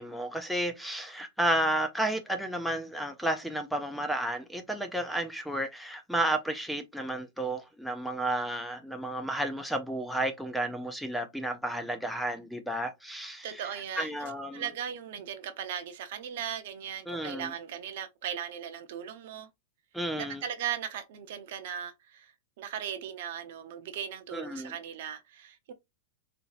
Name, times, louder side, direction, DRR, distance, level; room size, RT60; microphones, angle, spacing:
voice 1, 0.0-13.6 14.0-14.6 17.1-17.5 19.9-20.4 24.3-24.8, right 1 dB, ahead, 0.3 m, -32 dB
voice 2, 13.4-14.1 14.5-19.5 20.2-25.7, right 9 dB, 60° right, 0.6 m, -38 dB
3.9 x 2.6 x 2.4 m
supercardioid pair, 160°, 0 cm